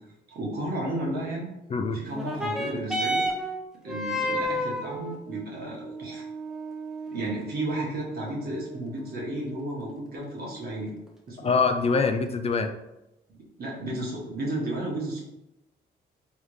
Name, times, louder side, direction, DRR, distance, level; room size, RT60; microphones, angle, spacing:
voice 1, 0.3-1.5 1.9-3.3 3.8-6.2 7.1-10.9 11.3-11.6 13.3-15.2, right 1 dB, 60° right, -3 dB, 1.4 m, -33 dB
sound 1, 2.1-11.1 11.9-12.0, equal, 5° right, 0.7 m, -33 dB
voice 2, 11.4-12.7, left 4 dB, 35° left, 6 dB, 0.4 m, -24 dB
3.6 x 3.3 x 3.1 m, 0.90 s
cardioid pair, 95°, 18 cm